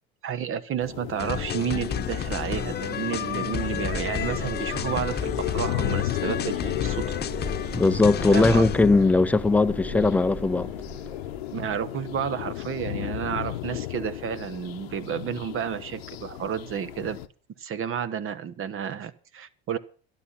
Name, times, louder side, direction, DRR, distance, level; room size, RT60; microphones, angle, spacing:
voice 1, 0.2-7.2 8.3-9.0 11.5-17.2 17.6-19.8, right 8 dB, 45° right, 1.1 m, -31 dB
sound 1, 0.8-17.3, left 14 dB, 85° left, 0.9 m, -35 dB
sound 2, 1.2-9.1, left 9 dB, 35° left, 1.0 m, -31 dB
sound 3, 2.4-11.8, right 4 dB, 30° right, 4.8 m, -41 dB
voice 2, 7.7-10.7, left 3 dB, 5° left, 0.5 m, -20 dB
12.5 x 11.5 x 5.7 m
hypercardioid pair, 80°, 30 cm